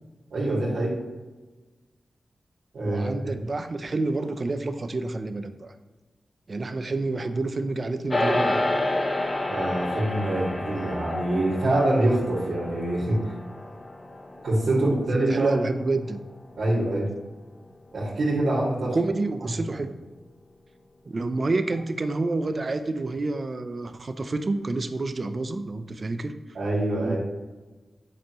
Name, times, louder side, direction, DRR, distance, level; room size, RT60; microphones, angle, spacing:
voice 1, 0.3-1.0 2.7-3.1 9.5-13.2 14.4-15.6 16.6-17.1 17.9-19.0 26.5-27.2, right 1 dB, 70° right, -8 dB, 2.5 m, -25 dB
voice 2, 2.8-5.7 6.5-8.6 15.1-16.2 18.8-19.9 21.1-26.3 27.0-27.2, right 3 dB, 45° right, 9 dB, 0.7 m, -28 dB
sound 1, 8.1-17.6, left 1 dB, 35° left, 1.1 m, -30 dB
8.7 x 6.8 x 3.1 m, 1.2 s
cardioid pair, 70°, 0 cm